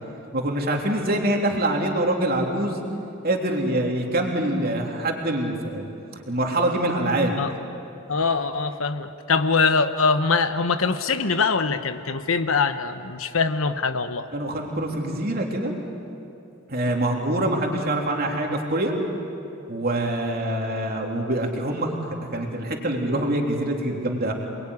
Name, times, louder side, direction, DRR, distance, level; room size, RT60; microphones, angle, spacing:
voice 1, 0.3-2.8 3.2-5.9 6.3-7.3 14.3-15.7 16.7-18.9 19.7-21.9 22.3-24.3, right 1 dB, 45° right, 1 dB, 3.4 m, -25 dB
voice 2, 8.1-14.3, left 4 dB, 80° left, 9 dB, 1.1 m, -23 dB
28.0 x 21.5 x 9.9 m, 2.7 s
head